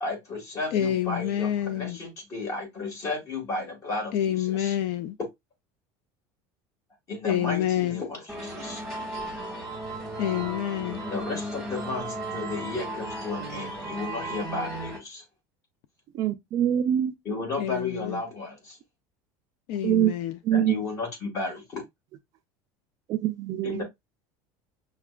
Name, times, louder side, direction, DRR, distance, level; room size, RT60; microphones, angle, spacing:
voice 1, 0.0-4.7 7.1-8.8 11.1-15.2 17.2-18.8 20.5-21.8 23.6-23.8, left 3 dB, 30° left, 1.7 m, -33 dB
voice 2, 0.7-2.0 4.1-5.1 7.2-8.0 10.2-11.0 17.6-18.2 19.7-20.4, left 11 dB, 60° left, 0.4 m, -27 dB
sound 1, 8.3-15.0, right 1 dB, ahead, 1.4 m, -35 dB
voice 3, 16.1-17.1 19.8-20.1 20.4-20.8 23.1-23.8, right 11 dB, 40° right, 0.4 m, -24 dB
5.7 x 2.2 x 2.3 m
cardioid pair, 155°, 10 cm